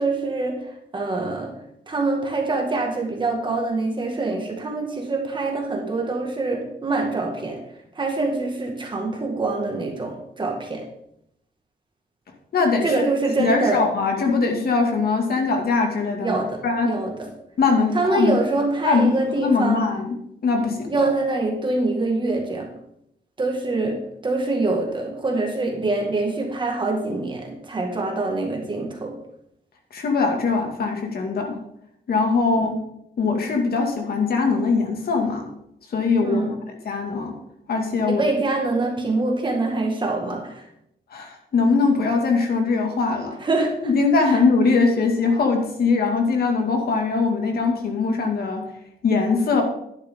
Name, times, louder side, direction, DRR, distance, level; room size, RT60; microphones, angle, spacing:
voice 1, 0.0-1.5 1.9-7.6 8.0-10.9 12.8-13.8 16.2-17.3 17.9-19.8 20.9-22.7 23.4-29.1 32.6-32.7 36.2-36.5 38.1-40.6 43.4-43.9 44.2-44.4, right 3 dB, 25° right, 1 dB, 1.9 m, -25 dB
voice 2, 12.5-13.0 13.4-16.9 17.6-18.4 18.8-19.1 19.4-20.2 20.4-20.8 29.9-31.6 32.1-32.8 33.2-35.5 35.9-36.4 36.9-37.3 37.7-38.2 41.1-43.4 43.8-48.6 49.0-49.6, left 4 dB, 55° left, 2 dB, 2.2 m, -21 dB
11.0 x 10.5 x 3.7 m, 0.77 s
wide cardioid pair, 180°, 18 cm